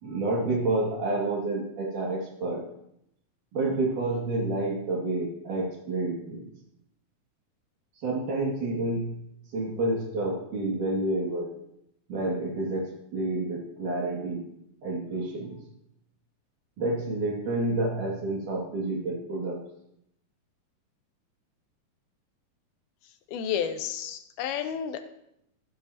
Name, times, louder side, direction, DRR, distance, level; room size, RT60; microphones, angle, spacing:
voice 1, 0.0-2.6 3.5-6.5 8.0-9.1 9.5-11.5 12.1-14.5 14.8-15.6 16.8-19.6, right 2 dB, 60° right, -2 dB, 3.5 m, -29 dB
voice 2, 23.3-25.0, left 8 dB, 85° left, 8 dB, 2.6 m, -31 dB
14.5 x 10.0 x 2.8 m, 0.78 s
omnidirectional pair, 4.3 m